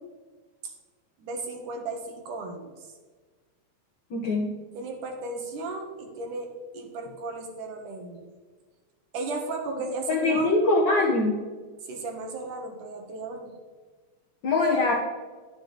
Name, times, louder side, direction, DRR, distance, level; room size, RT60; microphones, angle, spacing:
voice 1, 1.2-2.9 4.7-8.3 9.1-10.5 11.9-13.6, right 3 dB, 85° right, 3 dB, 2.9 m, -35 dB
voice 2, 4.1-4.6 10.1-11.5 14.4-14.9, left 2 dB, 85° left, -1 dB, 1.0 m, -23 dB
11.5 x 6.9 x 3.9 m, 1.4 s
omnidirectional pair, 3.5 m